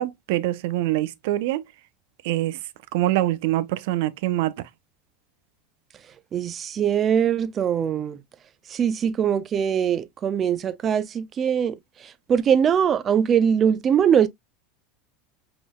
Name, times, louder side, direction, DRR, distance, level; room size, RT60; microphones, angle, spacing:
voice 1, 0.0-1.6 2.2-2.6 2.9-4.6, right 15 dB, 70° right, 0.6 m, -24 dB
voice 2, 6.3-8.2 8.7-14.3, right 8 dB, 35° right, 0.6 m, -22 dB
5.0 x 3.9 x 2.3 m
supercardioid pair, 105°, 0 cm